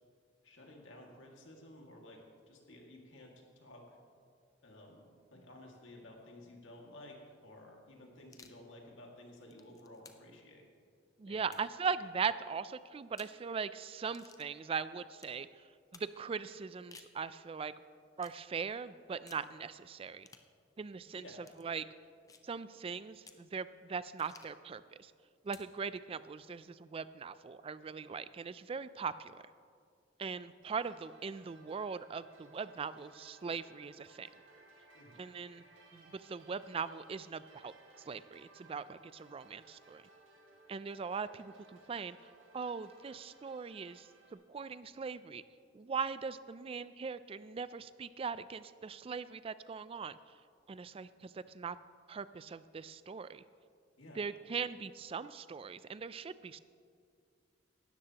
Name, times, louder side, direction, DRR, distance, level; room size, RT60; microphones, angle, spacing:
voice 1, 0.4-4.0 4.6-10.7 11.3-11.6 21.1-21.4 34.9-35.2 54.0-54.3, left 1 dB, 70° left, 0 dB, 2.0 m, -54 dB
sound 1, 8.2-8.6 9.3-10.4 11.4-11.9 13.0-13.4 14.1-14.5 15.2-15.4 15.9-16.1 16.7-17.2 18.2-18.4 19.3-19.5 20.2-20.5 21.4-21.6 22.3-22.5 23.2-23.5 24.2-24.6 25.4-25.8, left 4 dB, 15° left, 0.6 m, -57 dB
voice 2, 11.2-15.5 15.9-17.7 18.2-20.3 20.8-21.2 21.6-21.8 22.4-25.1 25.4-29.4 30.2-34.3 35.2-35.6 35.9-37.7 38.1-40.0 40.7-42.2 42.5-45.4 45.7-50.2 50.7-51.8 52.1-53.4 54.2-56.6, right 5 dB, 30° right, 15 dB, 0.3 m, -40 dB
sound 2, 30.6-44.3, right 2 dB, 75° right, 2.3 m, -62 dB
17.5 x 13.0 x 2.9 m, 2.2 s
head